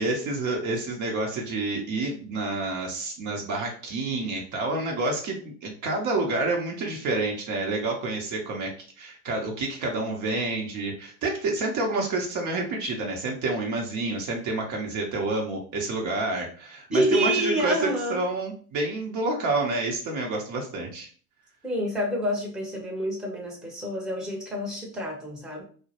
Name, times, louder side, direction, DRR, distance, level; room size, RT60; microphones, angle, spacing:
voice 1, 0.0-8.7 9.0-21.1, right 2 dB, 45° right, 1 dB, 0.7 m, -28 dB
voice 2, 16.9-18.2 21.6-25.6, equal, ahead, -1 dB, 0.7 m, -28 dB
2.2 x 2.1 x 2.8 m, 0.43 s
hypercardioid pair, 85°, 43 cm